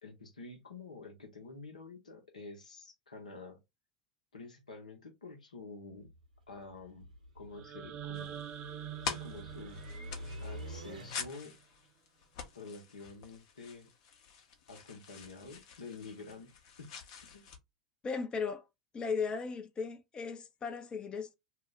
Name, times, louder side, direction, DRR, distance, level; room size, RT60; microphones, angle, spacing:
voice 1, 0.0-3.6 4.3-6.1 6.5-8.4 9.1-9.8 10.4-11.5 12.5-13.9 14.7-16.5 16.8-16.9 17.2-17.4, left 3 dB, 85° left, 0.8 m, -48 dB
sound 1, 5.9-11.6, equal, 85° right, 0.7 m, -48 dB
sound 2, 7.5-11.6, right 10 dB, 40° right, 0.5 m, -46 dB
sound 3, 8.1-17.6, left 6 dB, 55° left, 0.7 m, -46 dB
voice 2, 18.0-18.6 18.9-21.3, left 5 dB, 25° left, 0.5 m, -36 dB
2.4 x 2.1 x 3.7 m
figure-of-eight pair, 90°, 4 cm